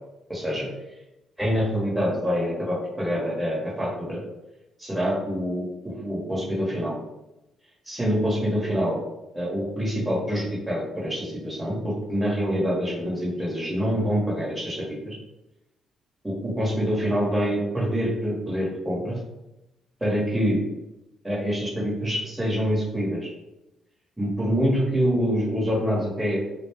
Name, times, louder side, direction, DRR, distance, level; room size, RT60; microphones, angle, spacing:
voice 1, 0.3-0.7 1.4-4.2 4.8-7.0 7.9-9.0 9.3-15.2 16.2-19.2 20.0-20.6 21.2-23.3 24.2-26.4, equal, 5° right, -5 dB, 1.0 m, -26 dB
2.3 x 2.1 x 3.4 m, 0.95 s
cardioid pair, 90°, 0 cm